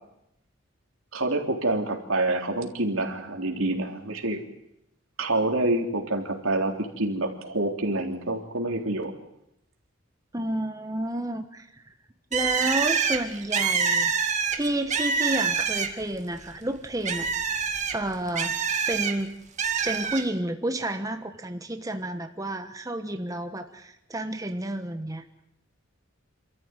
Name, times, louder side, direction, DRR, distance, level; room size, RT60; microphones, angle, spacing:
voice 1, 1.1-4.4 5.2-9.1, right 2 dB, 85° right, 3 dB, 3.6 m, -27 dB
voice 2, 10.3-11.8 12.3-14.1 14.5-17.3 17.9-18.5 18.9-19.3 19.8-25.2, right 1 dB, 15° right, 6 dB, 1.2 m, -30 dB
Bird, 12.3-16.1 16.5-19.1 19.6-20.2, right 6 dB, 35° right, 2.0 m, -26 dB
27.5 x 14.0 x 9.4 m, 0.82 s
head